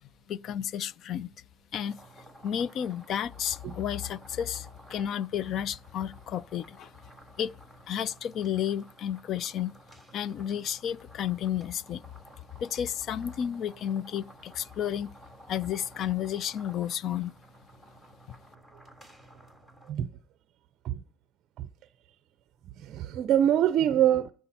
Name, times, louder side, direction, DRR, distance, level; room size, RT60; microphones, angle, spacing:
voice 1, 0.3-1.3 1.7-2.0 2.4-6.9 7.4-7.5 7.9-9.7 10.1-12.0 12.6-15.1 15.5-17.3, left 9 dB, 40° left, 0.4 m, -32 dB
sound 1, 1.7-19.9, right 1 dB, 15° left, 3.3 m, -54 dB
voice 2, 22.8-24.3, right 11 dB, 40° right, 0.5 m, -24 dB
13.0 x 4.6 x 4.2 m
cardioid pair, 150°, 0 cm